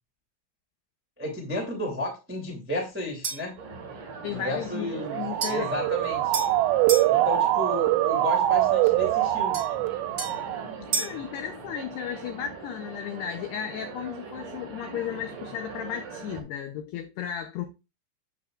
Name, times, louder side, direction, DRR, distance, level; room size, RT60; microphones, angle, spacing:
voice 1, 1.2-3.6 4.3-5.2 5.4-6.3 7.1-9.6, left 1 dB, 15° right, 0.4 m, -33 dB
sound 1, 3.2-3.6 5.4-7.1 9.5-11.3, right 4 dB, 30° right, 1.8 m, -34 dB
sound 2, 3.6-16.4, right 4 dB, 55° right, 2.8 m, -41 dB
voice 2, 4.2-5.8 11.0-17.7, left 9 dB, 90° left, 2.3 m, -34 dB
Motor vehicle (road) / Siren, 4.9-10.8, right 14 dB, 85° right, 2.4 m, -24 dB
9.0 x 8.0 x 2.4 m
omnidirectional pair, 5.8 m